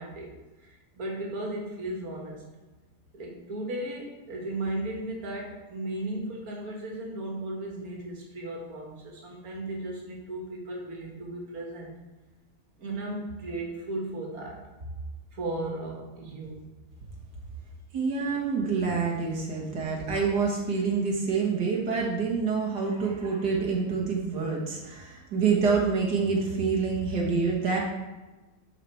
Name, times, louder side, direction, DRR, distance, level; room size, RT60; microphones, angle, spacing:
voice 1, 0.0-2.4 3.1-12.0 12.8-14.6 15.3-16.6, right 1 dB, 60° right, -2 dB, 2.2 m, -36 dB
voice 2, 17.9-27.8, right 5 dB, 90° right, -2 dB, 2.2 m, -27 dB
11.5 x 5.0 x 4.6 m, 1.2 s
omnidirectional pair, 1.8 m